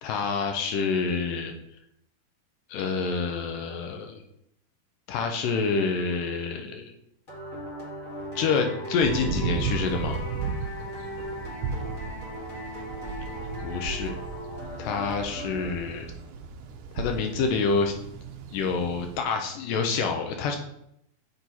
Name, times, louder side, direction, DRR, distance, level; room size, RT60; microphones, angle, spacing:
voice 1, 0.0-1.5 2.7-4.2 5.1-6.9 8.4-10.2 13.6-14.2 14.8-16.1 17.0-17.9 18.5-20.6, left 5 dB, 75° left, 4 dB, 2.2 m, -27 dB
sound 1, 7.3-16.2, equal, 30° left, 1.4 m, -38 dB
sound 2, 9.0-19.2, right 5 dB, 80° right, 1.7 m, -35 dB
6.8 x 4.5 x 4.1 m, 0.74 s
omnidirectional pair, 4.2 m